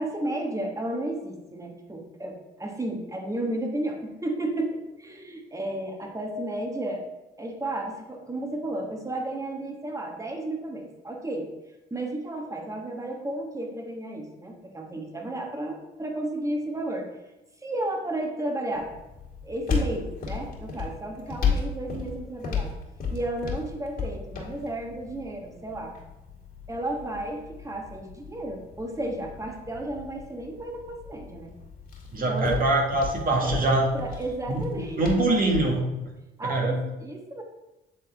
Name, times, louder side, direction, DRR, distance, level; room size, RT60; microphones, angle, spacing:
voice 1, 0.0-7.0 7.4-11.5 11.9-17.1 17.6-18.9 19.4-22.7 23.1-25.9 26.7-31.5 32.2-32.6 33.4-33.6 33.9-35.2 36.4-37.4, right 1 dB, 15° right, 2 dB, 1.3 m, -33 dB
sound 1, 18.7-35.8, left 5 dB, 50° left, 2.1 m, -35 dB
voice 2, 32.1-33.9 34.5-34.6 35.0-35.8 36.4-36.7, right 2 dB, 45° right, 0 dB, 1.6 m, -23 dB
8.3 x 3.7 x 3.4 m, 1.0 s
supercardioid pair, 75°, 20 cm